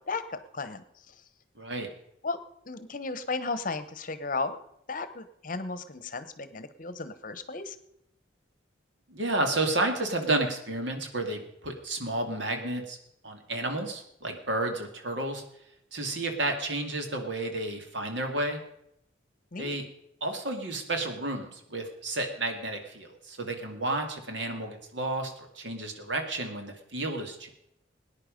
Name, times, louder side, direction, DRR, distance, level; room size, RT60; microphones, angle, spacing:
voice 1, 0.1-0.8 2.2-2.4 2.7-4.6 4.9-7.8 19.5-19.8, left 3 dB, 45° left, 13 dB, 1.0 m, -34 dB
voice 2, 1.6-1.9 9.1-13.0 13.2-15.4 15.9-18.6 19.6-19.8 20.2-27.5, right 2 dB, 70° right, 4 dB, 2.3 m, -31 dB
19.0 x 9.8 x 5.2 m, 0.76 s
head